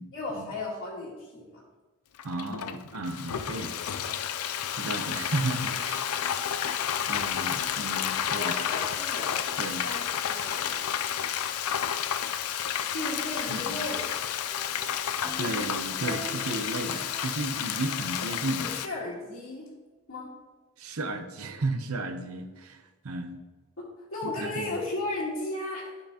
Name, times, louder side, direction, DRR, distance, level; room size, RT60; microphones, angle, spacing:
voice 1, 0.1-1.6 8.3-9.5 9.8-10.8 12.8-14.3 18.6-19.7 20.1-20.3 23.8-26.0, left 2 dB, 60° left, -8 dB, 1.7 m, -35 dB
Frying (food), 2.2-18.9, left 9 dB, 80° left, 0.5 m, -31 dB
voice 2, 2.2-3.7 4.8-6.1 7.1-8.5 9.6-9.8 13.5-13.9 15.4-18.7 20.8-23.4 24.4-24.8, right 2 dB, 70° right, 8 dB, 0.8 m, -33 dB
sound 1, 14.5-18.8, right 2 dB, ahead, 0.6 m, -45 dB
10.0 x 5.8 x 2.9 m, 1.2 s
head